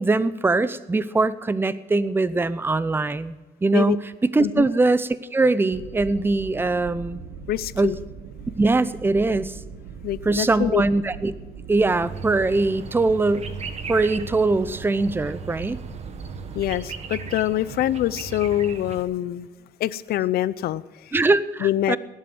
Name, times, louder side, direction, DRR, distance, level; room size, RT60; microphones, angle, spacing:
voice 1, 0.0-4.0 4.3-7.2 7.8-7.9 8.6-9.6 10.2-11.3 11.7-13.4 13.9-15.8 21.1-22.0, right 3 dB, 15° right, 15 dB, 0.7 m, -22 dB
sound 1, 5.7-16.8, right 6 dB, 85° right, 1.5 m, -40 dB
voice 2, 7.5-8.0 10.0-10.8 16.5-19.5 19.8-21.3 21.6-22.0, left 13 dB, 65° left, 17 dB, 0.6 m, -25 dB
sound 2, 12.0-19.0, right 5 dB, 40° right, 1.6 m, -37 dB
17.5 x 11.5 x 6.2 m, 1.2 s
cardioid pair, 110°, 17 cm